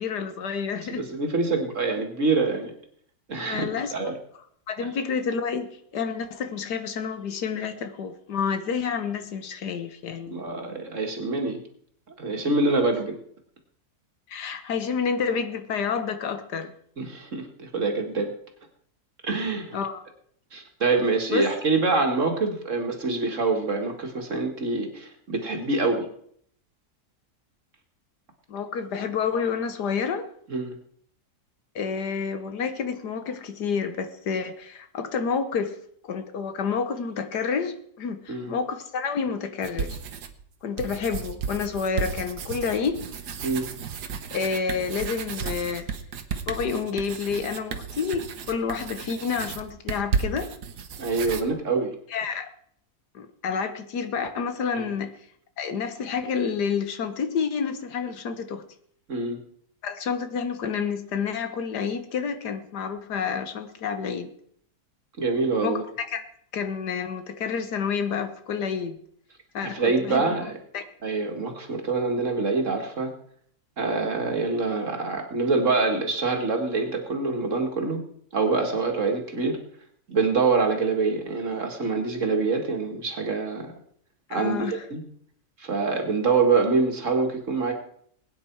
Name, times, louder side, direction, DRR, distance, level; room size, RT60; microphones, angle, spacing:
voice 1, 0.0-1.1 3.3-3.9 4.7-10.4 14.3-16.7 19.5-20.0 21.3-21.4 28.5-30.3 31.8-35.8 36.0-40.0 40.6-43.1 44.3-45.9 46.5-50.5 52.1-52.5 53.1-55.1 55.6-58.6 59.8-64.3 65.6-66.2 66.5-69.0 69.5-70.4 70.7-70.8 84.3-84.8, left 6 dB, 85° left, 9 dB, 1.8 m, -29 dB
voice 2, 1.0-2.7 3.3-4.1 10.3-11.6 12.2-13.2 17.0-18.3 19.2-19.8 20.5-26.1 30.5-30.8 38.3-38.6 43.4-43.7 51.0-51.9 54.7-54.9 59.1-59.4 65.2-65.8 69.6-70.6 71.0-73.1 73.8-78.0 78.3-79.6 80.1-83.7 84.3-85.0 85.6-87.7, right 3 dB, 50° right, 3 dB, 2.3 m, -25 dB
sound 1, 39.6-40.4 40.8-51.4, right 6 dB, 80° right, 1.6 m, -33 dB
20.5 x 9.3 x 4.6 m, 0.65 s
omnidirectional pair, 1.7 m